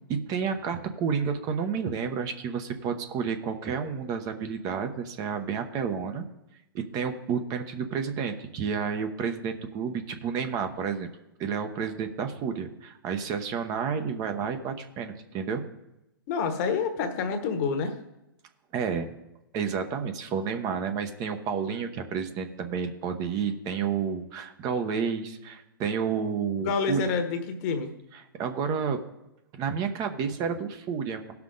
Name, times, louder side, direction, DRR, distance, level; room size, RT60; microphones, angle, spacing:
voice 1, 0.3-6.3 6.7-11.1 11.4-15.6 18.7-19.1 19.5-27.0 28.1-29.0 29.5-31.3, right 6 dB, 30° right, 7 dB, 0.9 m, -30 dB
voice 2, 16.3-18.0 26.6-27.9, left 5 dB, 45° left, 7 dB, 1.2 m, -28 dB
17.0 x 5.8 x 3.9 m, 0.92 s
hypercardioid pair, 130°, 12 cm